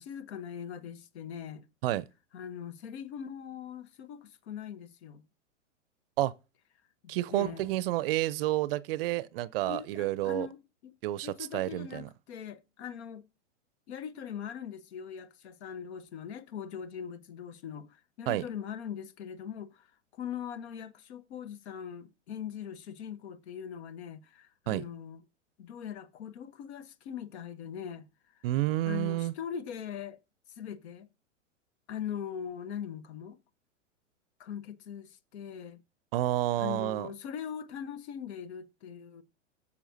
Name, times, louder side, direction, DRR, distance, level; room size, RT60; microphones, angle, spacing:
voice 1, 0.0-1.7 2.3-5.2 7.0-7.7 9.7-10.6 11.2-13.3 13.9-19.9 20.1-25.2 25.6-28.1 28.3-28.4 28.8-30.2 30.5-31.1 31.9-33.4 34.4-35.8 36.6-39.2, left 8 dB, 60° left, 1.1 m, -41 dB
voice 2, 7.1-10.5 11.0-12.1 18.3-18.4 24.7-24.8 28.4-29.3 36.1-37.1, right 15 dB, 50° right, 0.6 m, -30 dB
11.0 x 7.1 x 2.7 m
hypercardioid pair, 105°, 38 cm